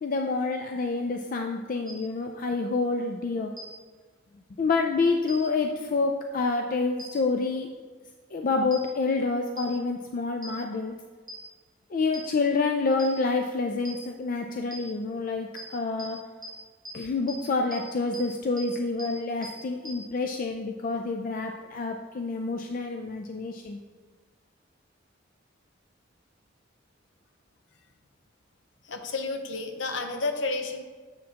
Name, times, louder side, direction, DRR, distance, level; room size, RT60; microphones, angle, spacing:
voice 1, 0.0-3.5 4.6-7.7 8.3-10.9 11.9-16.2 16.9-23.8, left 3 dB, 45° left, 4 dB, 0.4 m, -28 dB
sound 1, 1.9-2.0 3.6-3.7 5.3-5.4 7.0-7.1 8.7-8.8 9.6-9.7 10.4-10.5 11.3-11.4 12.1-12.2 13.0-13.1 13.9-14.0 14.7-14.8 15.6-15.7 16.0-16.1 16.4-16.5 16.9-17.0 17.3-17.4 17.7-17.8 18.1-18.2 18.6-18.7 19.0-19.1 19.4-19.5 19.9-20.0, left 1 dB, 40° right, 1.0 m, -40 dB
voice 2, 28.8-30.8, left 3 dB, 65° left, 6 dB, 0.7 m, -31 dB
7.2 x 6.3 x 2.9 m, 1.5 s
head